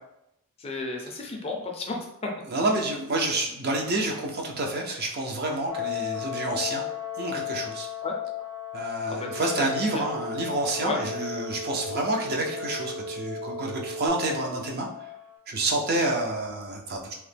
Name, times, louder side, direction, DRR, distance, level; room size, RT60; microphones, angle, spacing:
voice 1, 0.6-2.0 8.0-8.2 9.1-10.0 10.8-11.0, left 3 dB, 25° left, 0 dB, 0.4 m, -33 dB
voice 2, 2.5-6.8 7.2-7.9 8.7-14.9 15.5-17.1, right 2 dB, 45° right, 0 dB, 0.5 m, -28 dB
sound 1, 5.7-15.4, left 13 dB, 65° right, 1.0 m, -36 dB
Telephone, 9.1-14.1, right 1 dB, 85° right, 0.6 m, -37 dB
2.9 x 2.1 x 3.3 m, 0.80 s
head